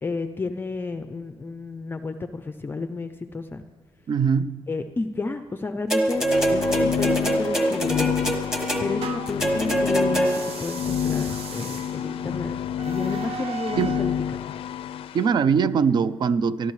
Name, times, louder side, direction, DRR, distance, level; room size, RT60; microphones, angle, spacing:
voice 1, 0.0-3.6 4.7-6.2 6.5-8.1 8.8-12.6 12.9-14.6, left 3 dB, 20° left, 8 dB, 0.5 m, -31 dB
voice 2, 4.1-4.6 13.8-14.0 15.1-16.7, right 6 dB, 50° right, 15 dB, 0.5 m, -22 dB
sound 1, 5.9-10.7 11.6-11.7, right 1 dB, 5° right, 1.5 m, -24 dB
sound 2, 6.1-15.2, left 9 dB, 75° left, 0.4 m, -29 dB
sound 3, 7.6-9.5 10.2-14.1, right 6 dB, 85° right, 0.8 m, -39 dB
23.5 x 13.5 x 3.2 m, 1.5 s
cardioid pair, 140°, 10 cm